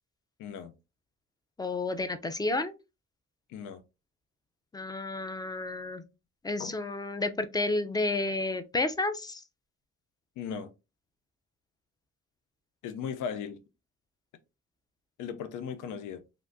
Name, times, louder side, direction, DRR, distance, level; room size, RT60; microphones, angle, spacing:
voice 1, 0.4-0.7 3.5-3.8 6.6-6.7 10.4-10.7 12.8-13.6 15.2-16.2, left 7 dB, 85° left, 0.5 m, -37 dB
voice 2, 1.6-2.7 4.7-6.0 6.4-9.4, left 2 dB, 15° left, 0.4 m, -31 dB
3.5 x 2.6 x 2.5 m
cardioid pair, 90°, 30 cm